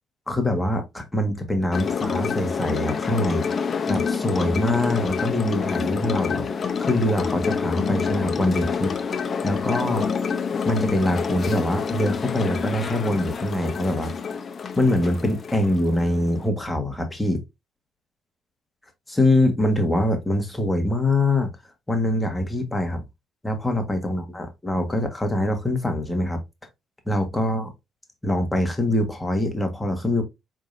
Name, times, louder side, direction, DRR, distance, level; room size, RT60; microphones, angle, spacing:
voice 1, 0.3-8.9 9.4-10.1 10.6-14.1 14.8-17.4 19.1-21.5 21.9-23.0 23.4-26.4 27.1-27.7 28.2-30.2, left 1 dB, 10° left, 1.4 m, -24 dB
sound 1, 1.7-16.5, left 6 dB, 45° left, 0.6 m, -27 dB
4.9 x 3.6 x 2.6 m
cardioid pair, 90°, 0 cm